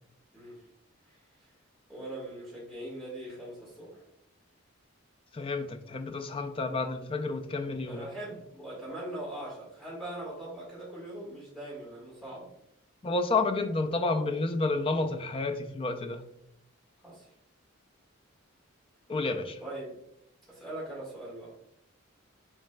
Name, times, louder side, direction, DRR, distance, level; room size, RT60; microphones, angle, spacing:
voice 1, 0.3-0.7 1.0-1.5 1.9-4.0 7.8-12.5 17.0-17.3 19.6-19.9 20.5-21.5, right 1 dB, ahead, -8 dB, 1.5 m, -41 dB
voice 2, 5.3-8.1 13.0-16.2 19.1-19.6, left 3 dB, 25° left, 6 dB, 0.3 m, -30 dB
6.5 x 3.2 x 2.2 m, 0.78 s
head